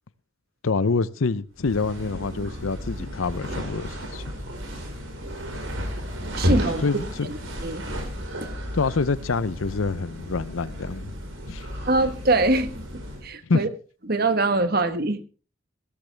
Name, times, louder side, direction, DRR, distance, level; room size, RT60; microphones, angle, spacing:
voice 1, 0.6-4.2 6.8-7.3 8.7-11.1 11.5-11.7 13.5-13.6, left 4 dB, 80° left, 0.7 m, -26 dB
sound 1, 1.6-13.3, equal, 75° right, 4.7 m, -32 dB
voice 2, 6.4-6.8 7.2-7.9 8.4-8.5 11.9-12.8 13.2-13.7 14.1-15.2, right 2 dB, 50° right, 1.3 m, -23 dB
16.0 x 13.5 x 3.4 m
head